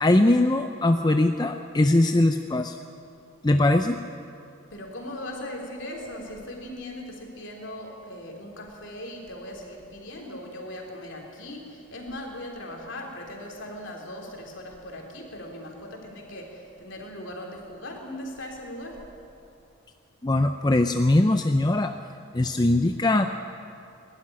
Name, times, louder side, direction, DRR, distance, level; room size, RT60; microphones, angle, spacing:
voice 1, 0.0-2.8 3.4-4.0 20.2-21.9 22.3-23.3, left 2 dB, 20° left, 7 dB, 0.5 m, -21 dB
voice 2, 4.7-19.0, left 1 dB, 55° left, 1 dB, 3.5 m, -39 dB
22.0 x 12.5 x 9.9 m, 2.6 s
head